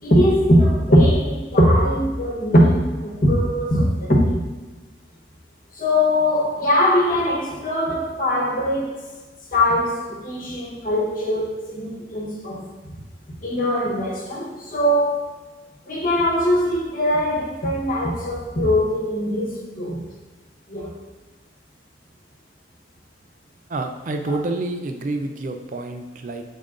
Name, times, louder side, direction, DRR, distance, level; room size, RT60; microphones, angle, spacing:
voice 1, 0.0-4.4 5.7-9.0 9.5-12.9 13.4-15.3 15.9-20.1 20.7-20.9 24.3-24.4, equal, 45° left, 1.1 m, -21 dB
voice 2, 23.7-26.4, right 2 dB, 45° right, 0.4 m, -28 dB
7.5 x 3.6 x 3.8 m
head